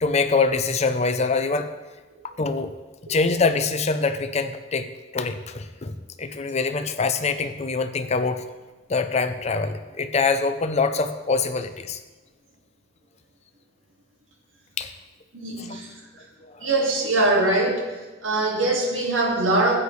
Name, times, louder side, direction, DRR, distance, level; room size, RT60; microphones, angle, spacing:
voice 1, 0.0-1.7 2.4-2.7 3.1-8.4 8.9-12.0 14.8-14.9 16.4-16.6, left 4 dB, 35° left, 8 dB, 0.6 m, -24 dB
voice 2, 15.3-15.9 16.6-17.8 18.2-19.7, right 2 dB, 85° right, 0 dB, 2.1 m, -22 dB
13.5 x 8.5 x 3.2 m, 1.2 s
head